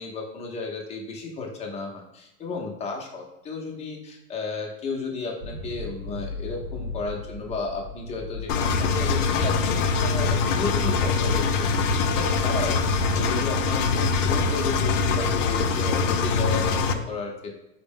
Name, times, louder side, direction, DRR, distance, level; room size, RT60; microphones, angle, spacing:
voice 1, 0.0-17.5, left 4 dB, 15° left, 0 dB, 0.5 m, -33 dB
sound 1, 5.4-15.7, left 3 dB, 50° right, 0.5 m, -35 dB
Engine, 8.5-16.9, left 4 dB, 65° left, 0.5 m, -23 dB
4.3 x 2.1 x 3.5 m, 0.93 s
supercardioid pair, 130°, 39 cm